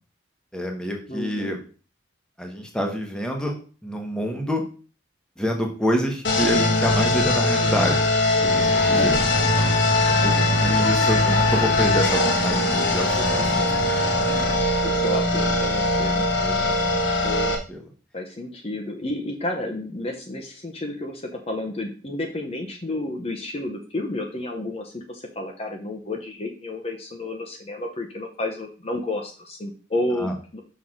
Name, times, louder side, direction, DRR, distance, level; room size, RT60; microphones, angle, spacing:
voice 1, 0.5-1.6 2.4-4.6 5.4-8.1 8.4-9.2 10.2-13.7 16.4-17.0 17.7-17.8 30.2-30.3, equal, 5° left, 2 dB, 1.1 m, -27 dB
voice 2, 1.1-1.6 13.2-13.6 14.8-16.3 17.2-17.5 18.1-30.6, left 2 dB, 35° left, 3 dB, 0.8 m, -31 dB
sound 1, 6.2-17.5, left 2 dB, 80° left, 1.5 m, -21 dB
sound 2, 8.4-14.5, left 1 dB, 65° left, 1.3 m, -30 dB
6.1 x 5.6 x 3.8 m, 0.38 s
head